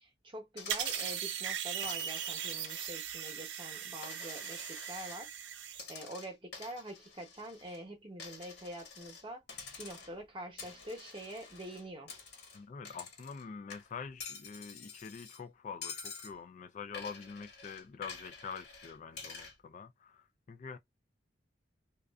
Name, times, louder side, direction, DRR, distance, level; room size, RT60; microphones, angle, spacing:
voice 1, 0.0-5.3 5.9-9.4 9.8-12.1, right 1 dB, 30° right, 0.9 m, -45 dB
Coin (dropping), 0.6-1.2 1.8-3.1 3.5-5.2 5.7-7.8 8.2-9.2 9.5-10.2 10.6-13.4 13.7-15.4 15.8-16.3 16.9-19.5, left 5 dB, 60° left, 1.3 m, -48 dB
sound 1, 0.7-5.8, right 9 dB, 70° right, 0.5 m, -39 dB
voice 2, 12.5-20.8, left 5 dB, 45° left, 0.3 m, -45 dB
2.5 x 2.3 x 2.2 m
head